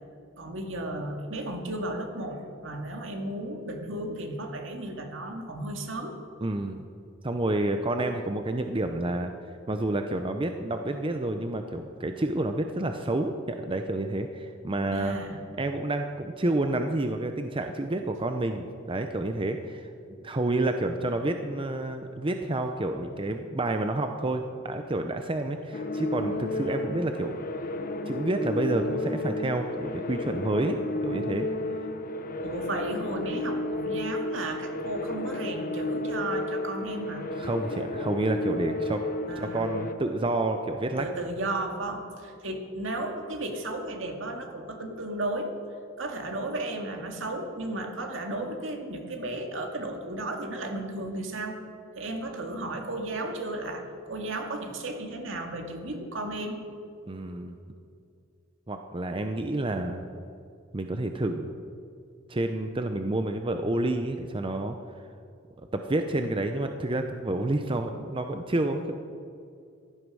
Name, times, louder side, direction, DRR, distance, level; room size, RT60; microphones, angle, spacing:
voice 1, 0.4-6.2 14.9-15.4 26.3-26.5 32.4-37.2 39.3-39.7 41.0-45.5 46.0-51.6 51.9-56.6, right 1 dB, 70° right, 3 dB, 2.1 m, -34 dB
voice 2, 6.4-6.8 7.2-9.3 9.7-15.2 15.6-19.9 20.2-27.4 28.1-31.5 37.3-39.1 39.4-41.1 57.1-57.6 58.7-60.0 60.7-61.5 62.3-64.8 65.6-68.9, right 2 dB, 25° right, 6 dB, 0.7 m, -29 dB
sound 1, 25.7-39.9, left 2 dB, 45° left, 0.9 m, -32 dB
15.5 x 11.5 x 6.3 m, 2.4 s
head